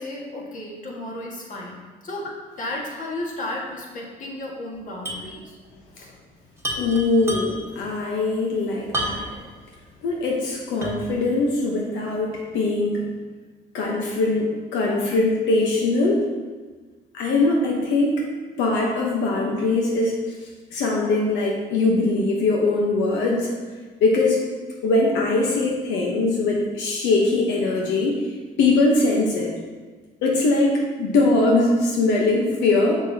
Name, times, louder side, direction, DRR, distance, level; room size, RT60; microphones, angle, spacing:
voice 1, 0.0-1.8 2.0-2.3 2.6-5.6 6.0-6.1, left 1 dB, 45° left, -2 dB, 1.7 m, -33 dB
sound 1, 5.0-5.3 5.6-5.7 6.6-7.8 8.9-9.5 10.0-10.1 10.8-11.2, right 1 dB, 15° right, 1.3 m, -29 dB
voice 2, 6.8-9.2 10.0-13.0 13.7-16.2 17.1-18.2 18.6-20.1 20.7-23.5 24.0-24.4 24.8-28.2 28.6-29.5 30.2-30.7 31.0-32.9, left 2 dB, 90° left, -1 dB, 1.0 m, -21 dB
7.0 x 6.4 x 2.8 m, 1.4 s
cardioid pair, 90°, 18 cm